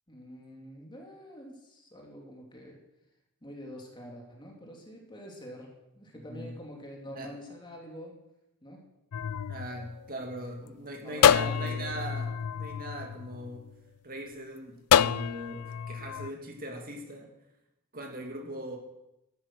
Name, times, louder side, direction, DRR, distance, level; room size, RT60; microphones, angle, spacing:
voice 1, 0.1-2.8 3.4-8.1 8.6-8.8 11.0-12.2, equal, 20° left, 0 dB, 3.0 m, -46 dB
sound 1, 9.1-10.6 11.2-13.8 14.9-16.3, left 8 dB, 85° left, 0.4 m, -27 dB
voice 2, 9.5-13.7 14.0-17.3 17.9-18.8, right 1 dB, 40° right, 2 dB, 2.4 m, -40 dB
13.0 x 12.0 x 6.3 m, 0.88 s
head